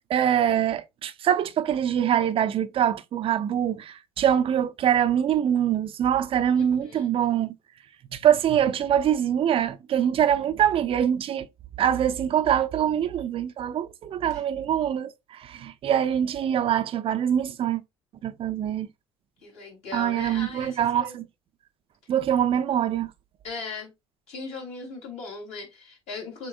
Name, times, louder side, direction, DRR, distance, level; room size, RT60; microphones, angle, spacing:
voice 1, 0.1-7.5 8.1-11.5 11.8-17.8 18.2-18.9 19.9-21.2 22.1-23.1, right 9 dB, 40° right, 0.6 m, -24 dB
voice 2, 6.6-7.1 14.2-14.4 19.4-21.2 23.4-23.9 24.3-26.5, left 4 dB, 50° left, 3.2 m, -38 dB
6.9 x 2.9 x 2.5 m
figure-of-eight pair, 60°, 14 cm